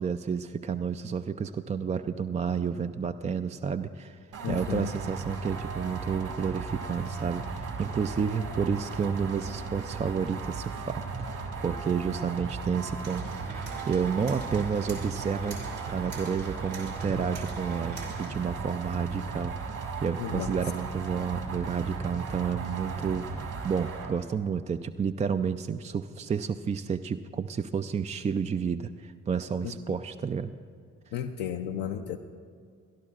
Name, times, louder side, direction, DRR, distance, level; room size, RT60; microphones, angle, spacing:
voice 1, 0.0-4.2 4.5-15.6 15.9-30.5, right 6 dB, 20° right, 9 dB, 0.4 m, -31 dB
sound 1, 4.3-24.1, right 4 dB, 60° right, 2.3 m, -36 dB
voice 2, 4.4-4.9 20.2-20.5 29.6-29.7 31.1-32.2, left 9 dB, 70° left, 2 dB, 0.6 m, -33 dB
sound 2, 13.0-18.3, right 3 dB, 90° right, 2.4 m, -44 dB
24.0 x 12.0 x 2.5 m, 2.1 s
hypercardioid pair, 45°, 36 cm